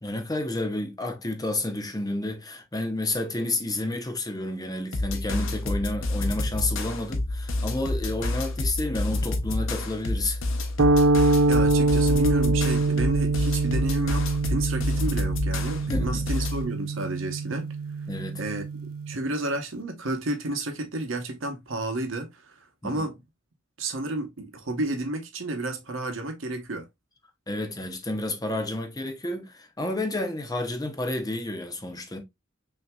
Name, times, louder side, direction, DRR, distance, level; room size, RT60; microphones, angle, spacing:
voice 1, 0.0-10.4 15.9-16.2 18.1-18.4 22.8-23.0 27.5-32.2, left 2 dB, 20° left, 0.8 m, -30 dB
sound 1, 4.9-16.6, left 2 dB, 70° left, 0.8 m, -28 dB
sound 2, 10.8-19.2, right 3 dB, 85° right, 0.4 m, -24 dB
voice 2, 11.5-17.7 18.4-18.6 19.1-22.5 22.8-23.2 23.8-26.9, right 2 dB, 70° right, 1.0 m, -31 dB
5.7 x 2.8 x 2.3 m
head